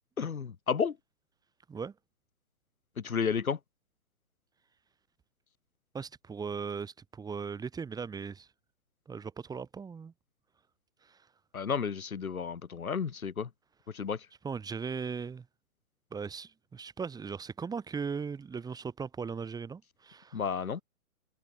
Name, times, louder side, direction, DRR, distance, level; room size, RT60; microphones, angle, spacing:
voice 1, 0.2-0.9 3.0-3.6 11.5-13.5 13.9-14.2 20.3-20.8, left 6 dB, 85° left, 2.7 m, -32 dB
voice 2, 5.9-8.5 9.1-10.1 11.0-11.2 14.4-15.5 16.1-20.4, right 5 dB, 10° right, 5.6 m, -38 dB
hypercardioid pair, 145°, 42 cm